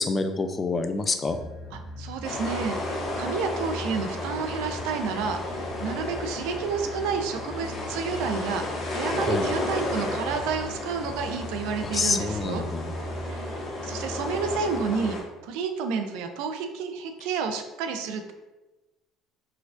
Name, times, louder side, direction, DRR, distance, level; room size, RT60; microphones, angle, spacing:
voice 1, 0.0-1.4 9.3-9.5 11.8-12.9, left 3 dB, 25° left, 8 dB, 0.3 m, -27 dB
sound 1, 1.2-15.2, equal, 75° left, 0.7 m, -39 dB
voice 2, 2.0-12.6 13.2-13.5 13.8-15.2 15.4-18.3, right 5 dB, 85° right, 6 dB, 0.4 m, -30 dB
sound 2, 2.2-15.2, left 2 dB, 50° left, 1.0 m, -33 dB
4.4 x 2.2 x 2.5 m, 1.1 s
cardioid pair, 110°, 0 cm